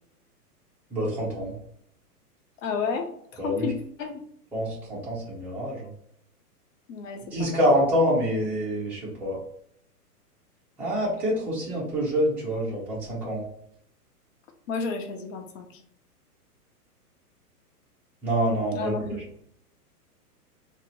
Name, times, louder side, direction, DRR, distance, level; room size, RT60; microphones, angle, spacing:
voice 1, 0.9-1.5 3.4-3.7 4.5-5.9 7.3-9.4 10.8-13.4 18.2-19.1, equal, 5° right, -7 dB, 0.7 m, -26 dB
voice 2, 2.6-3.1 3.3-4.2 6.9-7.6 14.7-15.8 18.7-19.2, left 5 dB, 55° left, 4 dB, 0.7 m, -32 dB
2.8 x 2.0 x 4.0 m, 0.69 s
hypercardioid pair, 130°, 47 cm